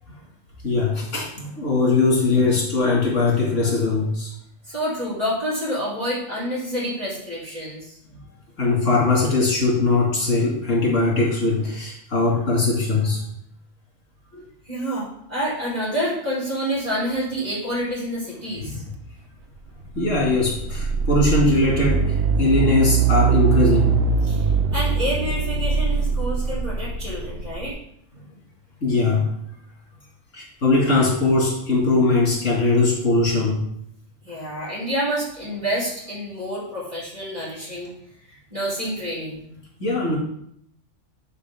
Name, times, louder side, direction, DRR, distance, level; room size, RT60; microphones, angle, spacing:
voice 1, 0.6-4.3 8.6-13.2 18.5-18.7 19.9-23.9 28.8-29.3 30.3-33.6 39.8-40.2, left 3 dB, 85° left, -4 dB, 2.8 m, -20 dB
voice 2, 4.7-8.0 14.7-18.8 24.2-27.7 34.2-37.9 38.3-39.4, equal, 35° right, -9 dB, 3.7 m, -28 dB
sound 1, 19.7-27.7, right 5 dB, 60° right, 0.9 m, -22 dB
10.0 x 5.1 x 3.7 m, 0.72 s
omnidirectional pair, 1.3 m